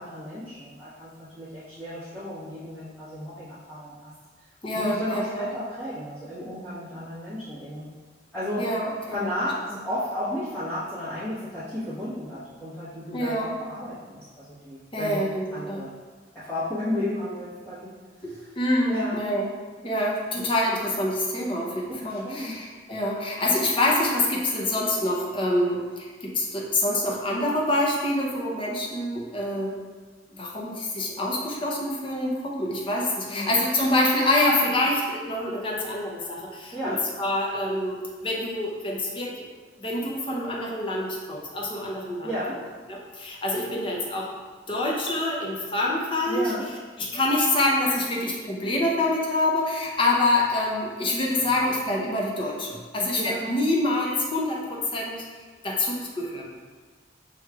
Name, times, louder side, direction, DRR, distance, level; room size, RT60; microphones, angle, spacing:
voice 1, 0.0-4.1 4.7-7.9 8.3-8.7 9.1-15.2 15.5-15.9 16.3-18.6 18.9-19.3 21.9-22.5 33.3-33.6 36.7-37.1 42.2-42.6 46.3-46.7 53.1-53.5, left 1 dB, 10° left, -14 dB, 1.0 m, -33 dB
voice 2, 4.6-5.5 8.6-9.2 13.1-13.5 14.9-15.8 18.2-19.5 19.8-29.8 30.3-39.5 39.8-42.3 42.9-44.3 44.7-46.5 47.0-56.4, left 1 dB, 30° left, -3 dB, 0.6 m, -26 dB
6.1 x 3.1 x 2.3 m, 1.4 s
head